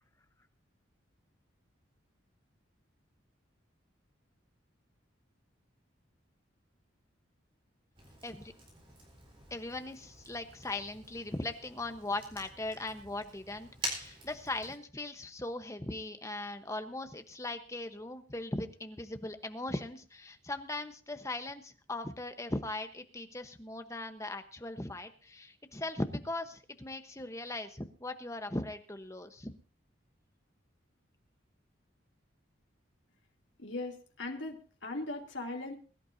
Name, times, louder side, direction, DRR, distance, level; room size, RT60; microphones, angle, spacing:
Fire, 7.9-14.7, right 1 dB, 25° right, 4.2 m, -46 dB
voice 1, 9.5-29.5, left 2 dB, 15° left, 8 dB, 0.9 m, -39 dB
voice 2, 33.6-35.7, left 2 dB, 70° left, 2 dB, 2.6 m, -39 dB
22.0 x 12.0 x 2.7 m, 0.38 s
head